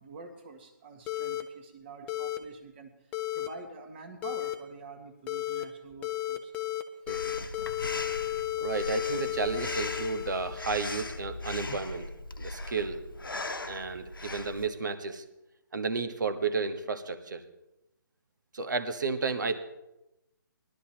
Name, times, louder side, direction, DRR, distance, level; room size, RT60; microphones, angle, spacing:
voice 1, 0.0-6.5, right 3 dB, 30° right, 5 dB, 1.8 m, -47 dB
sound 1, 1.1-1.4 2.1-2.4 3.1-3.5 4.2-4.5 5.3-5.6 6.0-6.8 7.1-10.8, left 15 dB, 10° left, 0.5 m, -33 dB
Breathing, 7.1-14.7, left 2 dB, 80° left, 1.1 m, -39 dB
voice 2, 8.6-13.0 13.6-15.2 15.7-17.4 18.5-19.6, right 4 dB, 60° right, 8 dB, 1.4 m, -32 dB
20.5 x 12.0 x 2.9 m, 0.91 s
figure-of-eight pair, 145°, 11 cm